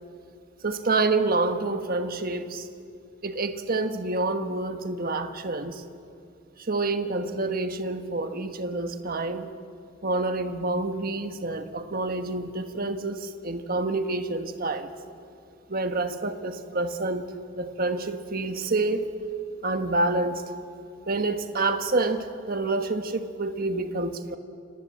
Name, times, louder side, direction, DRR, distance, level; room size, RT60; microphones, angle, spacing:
voice 1, 0.6-2.7 3.2-5.8 6.6-9.5 10.0-14.9 15.7-17.3 17.5-19.1 19.6-20.4 21.1-24.4, right 2 dB, 45° right, 7 dB, 1.4 m, -28 dB
30.0 x 26.5 x 7.6 m, 2.5 s
head